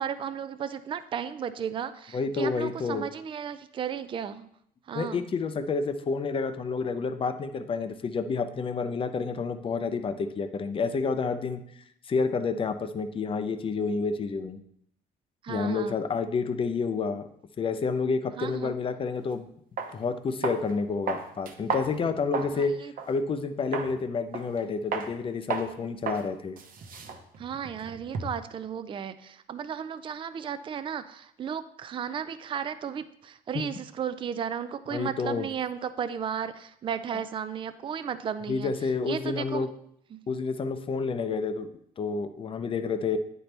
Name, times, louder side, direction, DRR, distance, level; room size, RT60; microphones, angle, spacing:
voice 1, 0.0-4.5 4.9-5.3 15.4-16.0 18.4-18.7 22.5-22.9 27.4-38.7 39.0-39.7 40.1-40.2, right 8 dB, 30° right, 12 dB, 0.4 m, -34 dB
voice 2, 2.1-3.1 4.9-11.6 12.1-14.6 15.5-17.3 17.6-19.5 19.9-22.7 23.1-26.6 33.5-33.6 34.9-35.5 37.1-37.2 38.5-39.7 40.3-41.7 42.0-43.2, left 4 dB, 30° left, 9 dB, 0.5 m, -29 dB
sound 1, 19.2-19.3 19.8-19.9 20.4-20.7 21.1-22.6 23.0-23.1 23.7-23.9 24.3-24.6 24.9-25.1 25.5-25.7 26.1-26.3 26.6-28.5, right 5 dB, 55° right, 1.0 m, -33 dB
9.1 x 4.3 x 3.3 m, 0.70 s
cardioid pair, 110°, 17 cm